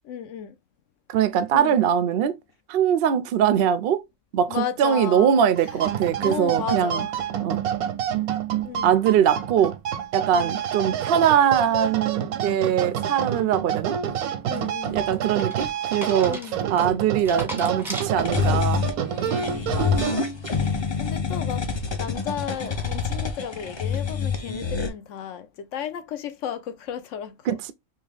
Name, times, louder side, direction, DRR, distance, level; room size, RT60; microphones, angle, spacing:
voice 1, 0.1-0.6 1.5-1.8 4.5-5.4 6.2-7.2 8.6-9.1 10.3-10.6 13.3-13.7 14.5-15.1 16.2-16.6 19.2-21.6 22.0-27.6, left 8 dB, 65° left, 0.9 m, -34 dB
voice 2, 1.1-2.4 2.7-4.0 4.3-7.1 7.4-7.7 8.8-9.7 10.1-14.0 14.9-16.4 16.7-18.8 27.5-27.7, right 9 dB, 70° right, 0.5 m, -22 dB
sound 1, 5.6-20.5, right 9 dB, 90° right, 1.1 m, -28 dB
sound 2, 14.5-18.8 19.2-19.6, equal, ahead, 0.8 m, -38 dB
sound 3, 18.0-24.9, left 6 dB, 40° left, 0.4 m, -27 dB
3.4 x 2.8 x 3.1 m
omnidirectional pair, 1.5 m